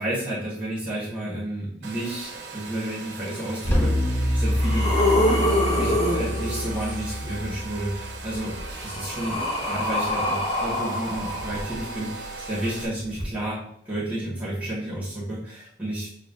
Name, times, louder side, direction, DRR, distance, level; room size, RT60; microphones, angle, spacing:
voice 1, 0.0-5.0 5.7-16.1, right 1 dB, 10° right, -9 dB, 1.5 m, -31 dB
Domestic sounds home sounds, 1.8-12.9, right 4 dB, 75° right, 0.7 m, -39 dB
sound 1, 3.6-3.7 4.3-7.1 8.3-12.2 13.1-13.2, left 1 dB, 35° left, 1.1 m, -26 dB
sound 2, 3.7-9.1, left 1 dB, 10° left, 0.6 m, -27 dB
6.5 x 3.0 x 2.6 m, 0.66 s
head